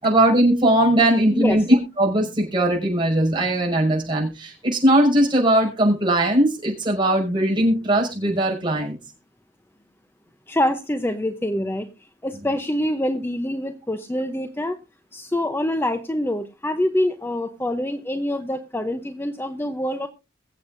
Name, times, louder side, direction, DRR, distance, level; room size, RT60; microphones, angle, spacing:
voice 1, 0.0-9.0, right 1 dB, 25° right, -1 dB, 5.9 m, -19 dB
voice 2, 10.5-11.9 12.2-14.7 15.1-20.1, left 1 dB, 10° left, 8 dB, 0.7 m, -25 dB
23.0 x 8.0 x 2.6 m, 0.26 s
head